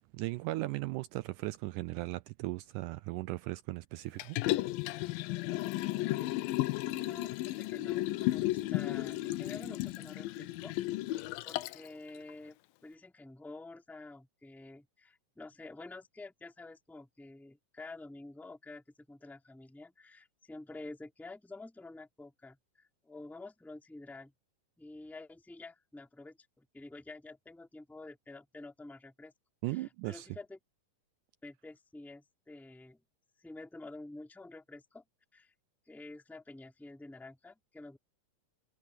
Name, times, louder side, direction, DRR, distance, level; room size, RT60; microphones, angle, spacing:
voice 1, 0.0-4.4 29.6-30.3, right 19 dB, 80° right, 1.9 m, -37 dB
Liquid, 4.2-11.9 12.3-12.4, left 17 dB, 85° left, 2.4 m, -34 dB
voice 2, 6.0-6.5 6.9-10.7 11.4-12.6 12.8-24.3 24.8-29.3 29.7-30.6 31.4-33.0 33.4-35.0 35.3-35.5 35.9-38.0, left 2 dB, ahead, 2.6 m, -49 dB
omnidirectional pair, 4.0 m